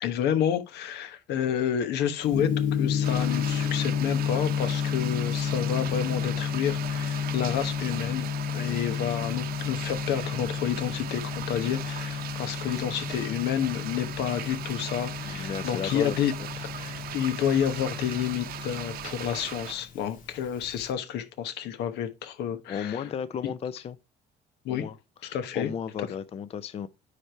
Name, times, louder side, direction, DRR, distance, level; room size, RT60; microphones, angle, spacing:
voice 1, 0.0-16.3 16.7-23.1 24.6-24.8 25.3-25.7 26.0-26.1, left 9 dB, 80° left, 1.1 m, -30 dB
Gong, 2.3-20.9, left 8 dB, 55° left, 1.7 m, -31 dB
sound 1, 3.0-19.7, right 11 dB, 65° right, 0.8 m, -39 dB
voice 2, 15.2-16.2 22.7-24.0 24.7-24.9 25.2-26.9, left 8 dB, 35° left, 0.5 m, -34 dB
9.8 x 3.3 x 4.4 m
cardioid pair, 110°, 17 cm